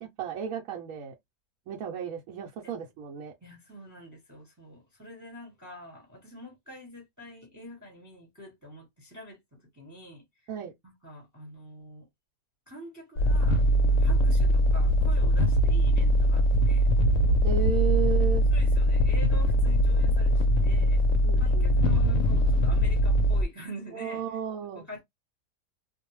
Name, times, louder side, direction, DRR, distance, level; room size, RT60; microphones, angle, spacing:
voice 1, 0.0-1.1 1.7-3.3 10.5-10.7 17.4-18.4 21.2-21.7 23.9-24.9, right 8 dB, 70° right, 1.0 m, -33 dB
voice 2, 3.4-10.2 10.8-12.1 12.7-13.6 13.9-16.9 18.5-21.0 21.4-24.4 24.7-25.0, equal, 15° right, 0.8 m, -46 dB
sound 1, 13.2-23.4, equal, 70° left, 0.8 m, -22 dB
2.5 x 2.1 x 2.9 m
omnidirectional pair, 1.6 m